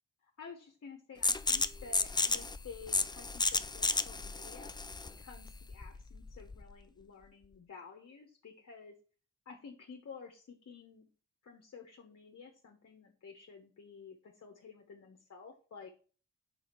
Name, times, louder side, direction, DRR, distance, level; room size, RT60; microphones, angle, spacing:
voice 1, 0.4-4.7 5.2-8.9 9.4-11.1 11.4-15.9, left 5 dB, 50° left, 3 dB, 1.1 m, -52 dB
sound 1, 1.2-6.7, left 3 dB, 15° left, 0.4 m, -33 dB
4.9 x 4.5 x 4.5 m, 0.39 s
cardioid pair, 75°, 32 cm